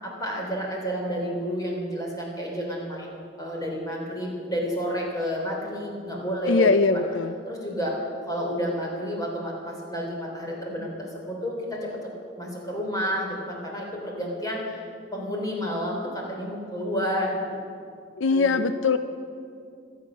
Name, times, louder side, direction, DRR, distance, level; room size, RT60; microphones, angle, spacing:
voice 1, 0.0-7.0 7.4-8.0 8.3-12.1 12.3-14.8 15.1-17.6 18.3-18.6, equal, 20° left, -1 dB, 3.4 m, -30 dB
voice 2, 6.4-7.3 18.2-19.0, left 4 dB, 80° left, 11 dB, 0.5 m, -21 dB
25.0 x 8.7 x 6.3 m, 2.4 s
head